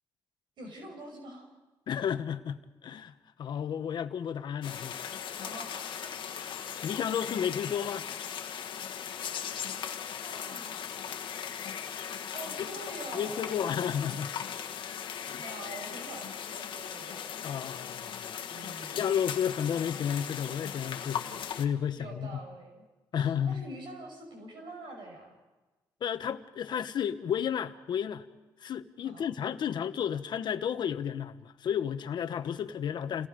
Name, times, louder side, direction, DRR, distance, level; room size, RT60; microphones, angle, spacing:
voice 1, 0.6-1.5 5.4-5.9 9.3-9.8 10.2-10.8 12.3-13.6 15.1-17.5 18.5-19.0 21.9-22.8 23.2-25.3 29.1-29.2, right 2 dB, 70° right, 5.8 m, -46 dB
voice 2, 1.9-3.1 3.4-5.0 6.8-8.1 12.6-12.7 13.1-14.3 15.3-15.4 17.4-18.2 18.8-21.3 21.6-22.4 23.1-23.6 26.0-28.2 28.6-33.3, left 8 dB, 65° left, 1.1 m, -32 dB
sound 1, 4.6-21.7, left 8 dB, 80° left, 1.5 m, -38 dB
29.5 x 18.0 x 5.2 m
cardioid pair, 105°, 8 cm